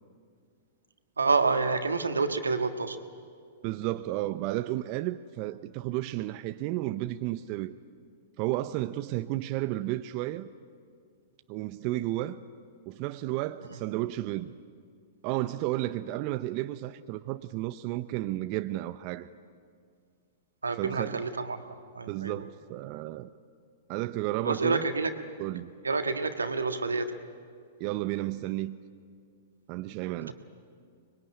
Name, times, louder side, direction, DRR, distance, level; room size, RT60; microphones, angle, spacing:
voice 1, 1.2-3.0 20.6-21.6 21.9-22.4 24.4-25.1 25.8-27.1 30.3-30.4, right 4 dB, 85° right, 1.7 m, -28 dB
voice 2, 3.6-7.8 8.4-10.5 11.5-12.4 12.9-14.6 15.2-19.3 20.7-21.2 22.1-23.3 23.9-24.9 25.4-25.7 27.8-28.8 29.7-30.3, right 16 dB, 40° right, 0.7 m, -32 dB
24.5 x 21.5 x 10.0 m
figure-of-eight pair, 110°, 0 cm